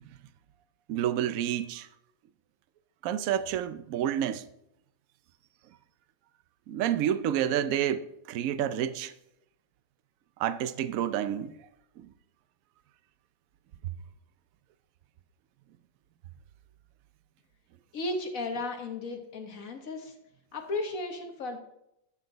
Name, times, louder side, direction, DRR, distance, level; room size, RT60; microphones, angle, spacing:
voice 1, 0.9-1.9 3.0-4.5 6.7-9.1 10.4-11.5 12.0-12.1, right 10 dB, 70° right, 0.8 m, -29 dB
voice 2, 17.9-20.1 20.5-21.6, left 2 dB, 50° left, 1.6 m, -34 dB
12.5 x 6.0 x 4.0 m
omnidirectional pair, 2.0 m